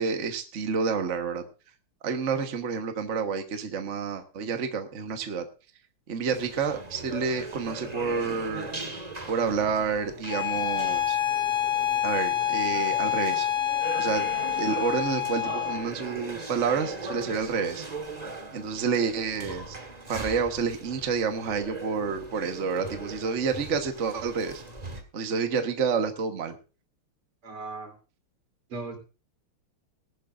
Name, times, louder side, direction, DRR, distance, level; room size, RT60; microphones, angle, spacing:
voice 1, 0.0-1.4 2.0-5.4 6.1-8.7 9.3-11.2 12.0-13.5 13.9-14.3 14.6-17.8 18.5-19.8 20.1-24.6 25.1-26.5, right 5 dB, 40° right, 6 dB, 1.4 m, -29 dB
sound 1, 6.3-25.0, right 2 dB, 20° right, 1.4 m, -40 dB
Bowed string instrument, 10.3-15.9, left 11 dB, 70° left, 2.3 m, -27 dB
voice 2, 27.4-28.0 28.7-29.0, right 3 dB, 85° right, 3 dB, 4.1 m, -37 dB
19.5 x 11.5 x 2.5 m, 0.33 s
omnidirectional pair, 2.3 m